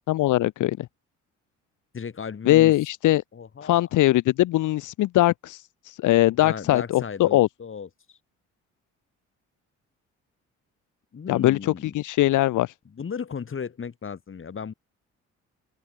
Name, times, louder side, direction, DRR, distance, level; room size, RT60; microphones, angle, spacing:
voice 1, 0.1-0.9 2.5-3.2 3.6-7.5 11.3-12.7, left 16 dB, 80° left, 1.1 m, -21 dB
voice 2, 1.9-2.7 3.3-3.9 6.4-8.2 11.1-11.9 12.9-14.7, left 6 dB, 45° left, 7.0 m, -35 dB
open air
cardioid pair, 90°, 30 cm